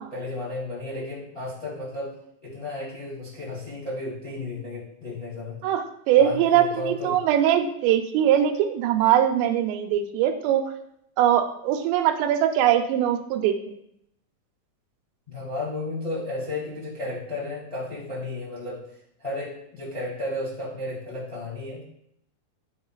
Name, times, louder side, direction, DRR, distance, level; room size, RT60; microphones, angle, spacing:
voice 1, 0.1-2.1 2.4-5.6 6.2-7.2 15.3-18.8 19.2-21.8, left 2 dB, 20° left, -6 dB, 1.1 m, -33 dB
voice 2, 5.6-10.6 11.2-13.6, right 10 dB, 85° right, 6 dB, 2.8 m, -21 dB
11.0 x 4.4 x 2.4 m, 0.73 s
omnidirectional pair, 5.0 m